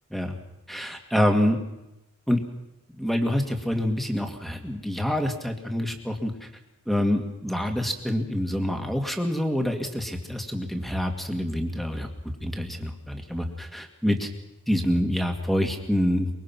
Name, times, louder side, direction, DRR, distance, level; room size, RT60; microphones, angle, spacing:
voice 1, 0.7-1.6 2.3-2.4 3.0-6.5 6.9-14.3 14.7-16.3, equal, ahead, 4 dB, 2.1 m, -26 dB
24.0 x 22.5 x 6.0 m, 0.91 s
head